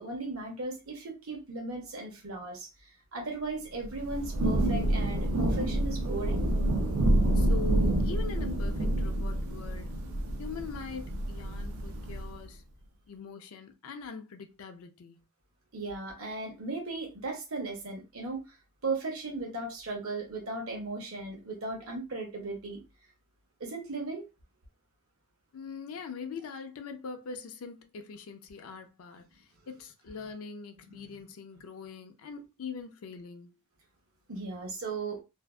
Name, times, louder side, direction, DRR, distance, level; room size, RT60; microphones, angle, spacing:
voice 1, 0.0-2.7 3.1-6.5 15.7-18.5 18.8-22.8 23.6-24.2 30.9-31.3 34.3-35.2, right 3 dB, 70° right, 0.8 m, -37 dB
Thunder / Rain, 3.8-12.4, right 1 dB, 90° right, 0.5 m, -28 dB
voice 2, 7.3-9.9 10.4-12.6 13.1-15.2 25.5-33.6, left 5 dB, 70° left, 0.4 m, -42 dB
2.6 x 2.3 x 2.2 m
head